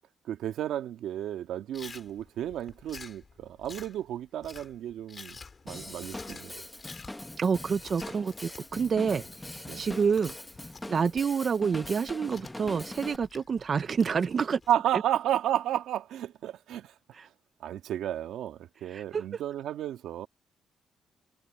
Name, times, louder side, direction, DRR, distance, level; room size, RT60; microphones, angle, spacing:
voice 1, 0.3-5.4 5.7-6.6 9.7-9.8 14.7-16.9 17.6-20.3, right 11 dB, 80° right, 1.9 m, -32 dB
Chewing mastication, 1.7-14.7, left 4 dB, 35° left, 5.8 m, -50 dB
Drum kit / Drum, 5.7-13.2, left 1 dB, 10° left, 1.6 m, -42 dB
voice 2, 7.4-10.3 10.9-14.6 17.1-17.3 18.9-19.4, right 6 dB, 45° right, 0.8 m, -28 dB
cardioid pair, 90°, 0 cm